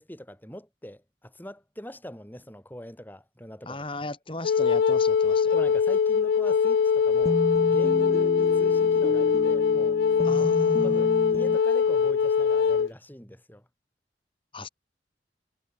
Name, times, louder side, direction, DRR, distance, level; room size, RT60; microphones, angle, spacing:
voice 1, 0.0-3.8 5.5-7.4 7.7-10.5 10.8-13.7, equal, 10° left, 3.9 m, -42 dB
voice 2, 3.6-5.5 10.2-11.0 14.5-14.7, left 2 dB, 30° left, 4.0 m, -36 dB
Wind instrument woodwind instrument, 4.4-12.9, left 6 dB, 65° left, 0.3 m, -22 dB
sound 1, 7.3-11.6, equal, 20° right, 3.5 m, -32 dB
head